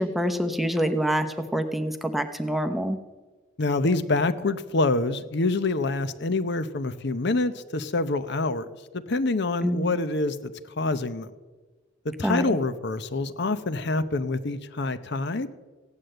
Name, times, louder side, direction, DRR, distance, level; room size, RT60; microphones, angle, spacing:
voice 1, 0.0-3.0 9.6-10.0 12.2-12.5, equal, ahead, 6 dB, 0.8 m, -26 dB
voice 2, 3.6-8.7 8.9-10.5 10.8-11.3 12.0-15.5, left 2 dB, 55° left, 12 dB, 0.8 m, -26 dB
16.0 x 9.8 x 7.7 m, 1.3 s
head